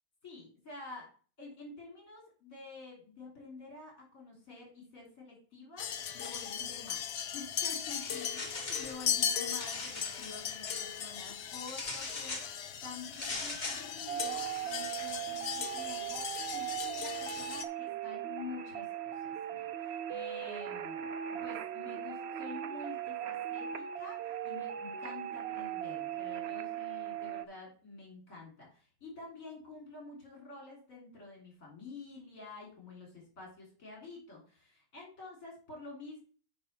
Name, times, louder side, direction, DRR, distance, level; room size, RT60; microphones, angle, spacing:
voice 1, 0.2-1.1 1.4-7.1 7.3-12.5 12.8-36.2, left 3 dB, 50° left, -2 dB, 3.6 m, -49 dB
sound 1, 5.8-17.6, left 8 dB, 65° left, 0.6 m, -38 dB
sound 2, 7.9-9.0 9.4-10.8 11.7-12.5 13.1-13.9, left 2 dB, 30° left, 1.3 m, -41 dB
sound 3, 14.1-27.5, right 10 dB, 75° right, 0.6 m, -39 dB
8.9 x 3.7 x 5.5 m, 0.39 s
omnidirectional pair, 1.8 m